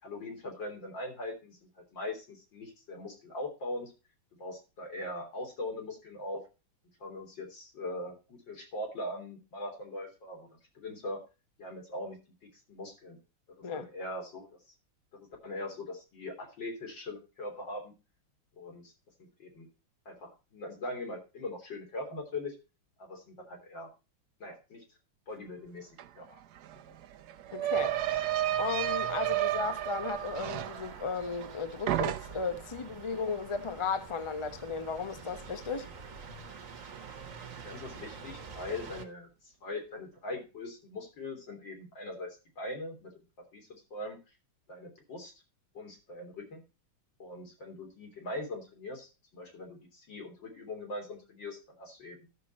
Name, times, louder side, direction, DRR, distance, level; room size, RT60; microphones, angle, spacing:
voice 1, 0.0-3.9 4.4-6.4 7.0-10.5 10.7-11.2 11.6-12.2 12.7-13.2 13.7-14.6 15.1-17.9 18.6-18.9 19.4-19.7 20.1-22.5 23.0-23.9 24.4-24.8 25.3-25.9 26.2-26.4 37.6-43.1 43.5-44.2 44.7-45.3 45.7-46.6 47.2-52.3, left 2 dB, 65° left, 4.0 m, -41 dB
sound 1, 26.0-26.1 26.3-31.6 31.9-32.6, right 13 dB, 65° right, 1.1 m, -32 dB
voice 2, 27.5-28.0 28.6-35.9, left 5 dB, 45° left, 0.4 m, -35 dB
sound 2, 27.7-39.1, right 5 dB, 45° right, 1.4 m, -47 dB
13.0 x 6.6 x 4.2 m
omnidirectional pair, 2.2 m